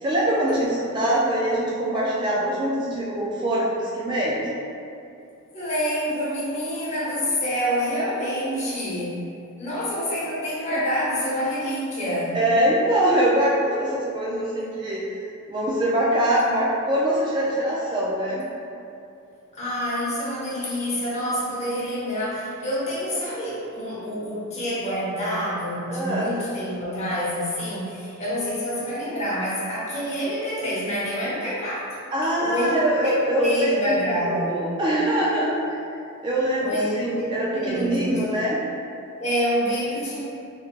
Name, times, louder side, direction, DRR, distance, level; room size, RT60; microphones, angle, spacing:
voice 1, 0.0-4.5 10.7-10.8 12.3-18.5 25.9-26.3 32.1-35.8 36.2-38.6, right 1 dB, 20° right, -5 dB, 0.3 m, -23 dB
voice 2, 5.5-9.1 9.6-12.4 19.5-31.9 32.4-34.6 36.6-38.3 39.2-40.3, equal, 30° left, -8 dB, 0.9 m, -27 dB
3.3 x 3.1 x 2.4 m, 2.6 s
head